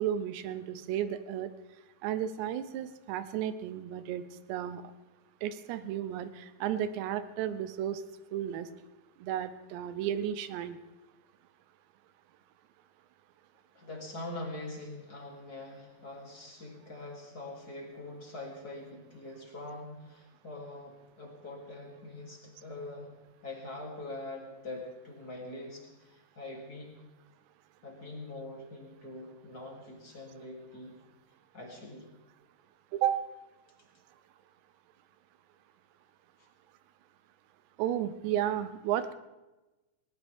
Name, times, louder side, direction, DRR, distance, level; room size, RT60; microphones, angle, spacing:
voice 1, 0.0-1.5 2.0-4.2 4.5-4.8 5.4-8.0 8.3-8.7 9.2-10.8 32.9-33.2 37.8-39.1, right 10 dB, 85° right, 12 dB, 3.0 m, -33 dB
voice 2, 13.7-23.1 23.4-26.9 27.8-31.0 31.5-32.1, left 2 dB, 25° left, -1 dB, 2.8 m, -43 dB
19.5 x 19.0 x 3.6 m, 1.1 s
omnidirectional pair, 5.0 m